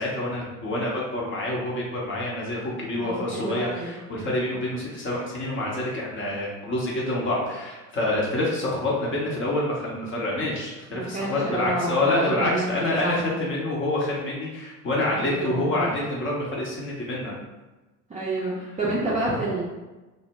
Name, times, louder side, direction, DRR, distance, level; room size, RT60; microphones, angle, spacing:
voice 1, 0.0-17.4, left 1 dB, 25° left, -4 dB, 0.7 m, -27 dB
voice 2, 3.0-4.0 10.9-12.7 13.0-13.5 15.1-15.9 18.1-19.6, right 2 dB, 15° right, -8 dB, 0.5 m, -29 dB
2.0 x 2.0 x 3.3 m, 1.2 s
figure-of-eight pair, 70°, 47 cm